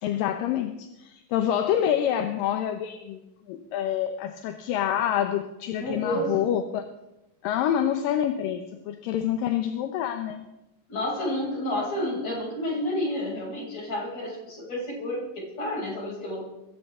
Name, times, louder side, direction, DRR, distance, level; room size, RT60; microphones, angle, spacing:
voice 1, 0.0-3.2 3.5-6.8 7.4-10.5, left 10 dB, 80° left, 7 dB, 2.7 m, -27 dB
voice 2, 5.8-6.4 10.9-16.4, left 1 dB, 50° left, -3 dB, 7.8 m, -30 dB
21.5 x 18.0 x 3.7 m, 0.93 s
omnidirectional pair, 3.9 m